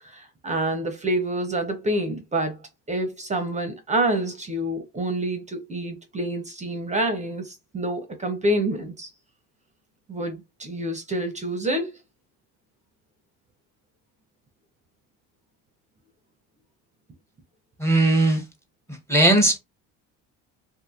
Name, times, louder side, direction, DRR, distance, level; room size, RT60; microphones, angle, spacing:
voice 1, 0.0-2.6 2.9-9.1 10.1-11.9, right 1 dB, 20° right, 0.6 m, -27 dB
voice 2, 17.8-18.4 19.1-19.6, right 1 dB, 5° left, 0.8 m, -18 dB
2.6 x 2.5 x 2.4 m
supercardioid pair, 95°, 36 cm